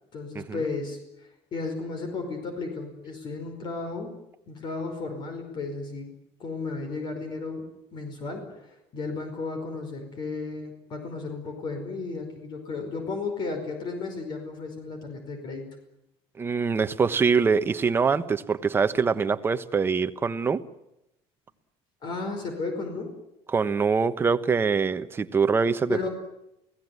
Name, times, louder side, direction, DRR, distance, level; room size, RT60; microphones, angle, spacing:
voice 1, 0.1-4.2 4.5-15.8 22.0-23.2 25.9-26.1, left 3 dB, 40° left, 5 dB, 5.0 m, -34 dB
voice 2, 16.4-20.6 23.5-26.0, right 5 dB, 20° right, 10 dB, 1.2 m, -24 dB
29.5 x 17.5 x 9.7 m, 0.87 s
cardioid pair, 150°, 12 cm